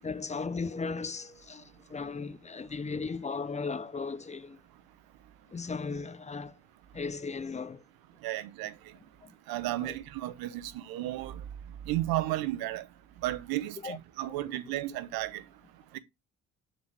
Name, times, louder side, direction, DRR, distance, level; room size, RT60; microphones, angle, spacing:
voice 1, 0.0-4.6 5.5-6.6 6.9-7.8 9.2-9.3 9.8-10.0 13.8-14.0 14.5-14.6, left 4 dB, 20° left, 0.6 m, -36 dB
voice 2, 8.2-8.7 9.5-11.4 11.9-12.8 13.2-15.4 15.9-16.0, right 15 dB, 85° right, 0.8 m, -33 dB
6.9 x 4.3 x 3.3 m
supercardioid pair, 55°, 35 cm